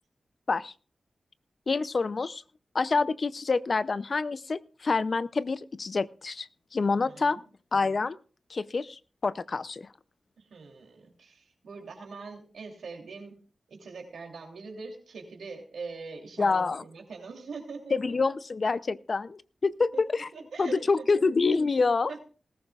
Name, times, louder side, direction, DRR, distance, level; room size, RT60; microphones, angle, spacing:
voice 1, 1.7-2.4 2.7-7.4 7.7-8.2 8.5-9.9 16.4-16.8 17.9-20.3 20.6-22.2, left 4 dB, 55° left, 16 dB, 0.5 m, -27 dB
voice 2, 6.9-7.4 10.4-13.4 13.7-18.1 19.9-20.0 20.3-21.1 22.1-22.2, right 4 dB, 90° right, 2 dB, 2.9 m, -43 dB
20.0 x 14.0 x 2.4 m, 0.38 s
cardioid pair, 50°, 0 cm